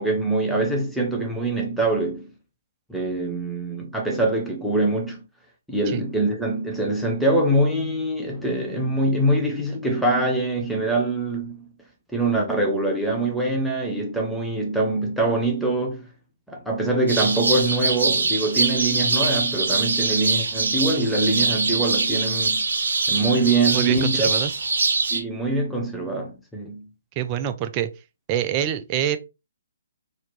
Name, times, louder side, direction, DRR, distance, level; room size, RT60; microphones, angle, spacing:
voice 1, 0.0-2.3 2.9-5.2 5.7-11.7 12.1-16.1 16.5-22.6 23.1-24.3 25.1-26.9, right 2 dB, ahead, 1.0 m, -24 dB
sound 1, 17.1-25.2, right 3 dB, 60° right, 1.0 m, -23 dB
voice 2, 23.7-24.5 27.2-27.9 28.3-29.2, right 10 dB, 25° right, 0.5 m, -25 dB
4.1 x 2.9 x 3.1 m
figure-of-eight pair, 135°, 0 cm